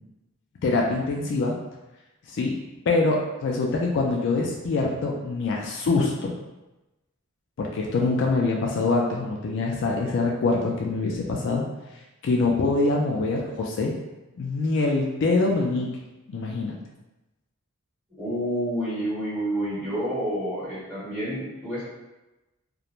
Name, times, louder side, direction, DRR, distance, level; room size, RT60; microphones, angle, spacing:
voice 1, 0.6-1.5 2.3-2.5 2.9-6.3 7.6-11.6 12.2-14.0 14.4-15.9 16.3-16.8, left 3 dB, 55° left, -1 dB, 0.3 m, -24 dB
voice 2, 18.2-21.8, equal, 5° right, -12 dB, 1.4 m, -29 dB
2.4 x 2.1 x 2.9 m, 1.0 s
head